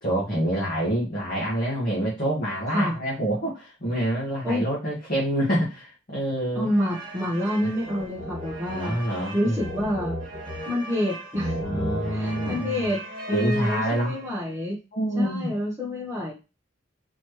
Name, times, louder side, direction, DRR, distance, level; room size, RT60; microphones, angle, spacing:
voice 1, 0.0-6.7 7.6-7.7 8.7-9.6 11.6-12.9 13.3-14.1 14.9-15.5, right 1 dB, 45° left, -5 dB, 1.5 m, -27 dB
voice 2, 6.5-9.0 9.3-10.1 10.7-11.6 12.1-13.0 13.3-14.8 15.1-16.3, left 1 dB, 15° right, -6 dB, 1.0 m, -27 dB
sound 1, 6.6-14.5, equal, 45° right, 1.9 m, -35 dB
4.3 x 3.1 x 3.1 m, 0.28 s
head